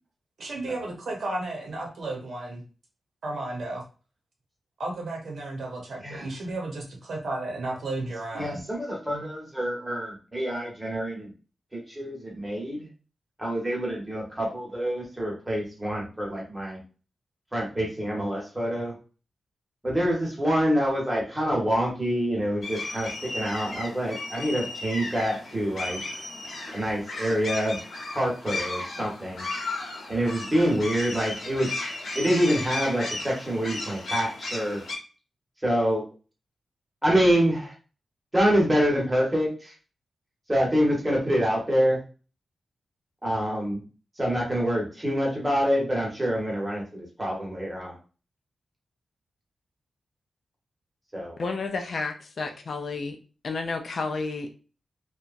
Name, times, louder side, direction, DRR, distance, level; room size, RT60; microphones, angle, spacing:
voice 1, 0.4-2.6 3.2-3.9 4.8-8.6, right 2 dB, 65° right, 0 dB, 0.8 m, -33 dB
voice 2, 8.3-11.3 11.7-12.9 13.4-16.8 17.5-19.0 19.8-26.0 26.7-27.8 28.1-29.4 30.1-31.7 32.1-34.8 35.6-36.0 37.0-37.7 38.3-39.7 40.5-42.0 43.2-43.8 44.2-48.0 51.1-51.4, equal, 10° right, -3 dB, 1.0 m, -26 dB
sound 1, 22.6-35.0, left 2 dB, 70° left, 0.9 m, -35 dB
voice 3, 51.4-53.2 53.4-54.5, left 4 dB, 50° left, 5 dB, 0.4 m, -31 dB
2.8 x 2.2 x 2.5 m, 0.35 s
wide cardioid pair, 165°, 0 cm